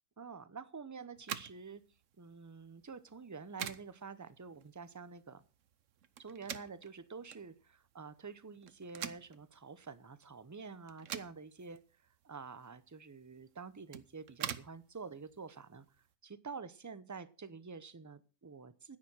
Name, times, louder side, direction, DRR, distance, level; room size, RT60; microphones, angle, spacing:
voice 1, 0.2-1.8 2.2-5.4 6.2-11.8 12.2-15.8 16.2-19.0, right 5 dB, 20° right, 15 dB, 0.5 m, -48 dB
sound 1, 1.1-16.1, right 9 dB, 75° right, 1.2 m, -48 dB
10.0 x 9.9 x 6.2 m, 0.35 s
omnidirectional pair, 1.3 m